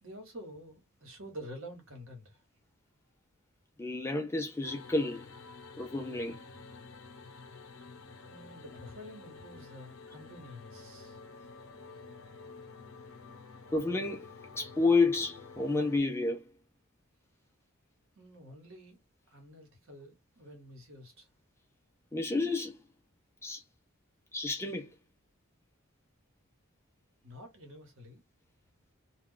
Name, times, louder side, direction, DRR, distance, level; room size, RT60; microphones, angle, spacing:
voice 1, 0.0-2.4 8.3-11.2 18.2-19.0 19.3-21.3 27.2-28.2, equal, 65° right, 1.2 m, -48 dB
voice 2, 3.8-5.2 5.8-6.4 13.7-14.3 14.5-16.4 22.1-22.7 23.4-23.6 24.3-24.9, left 3 dB, 10° left, 0.4 m, -30 dB
sound 1, 4.6-16.0, left 4 dB, 70° left, 0.7 m, -50 dB
2.3 x 2.3 x 3.7 m
head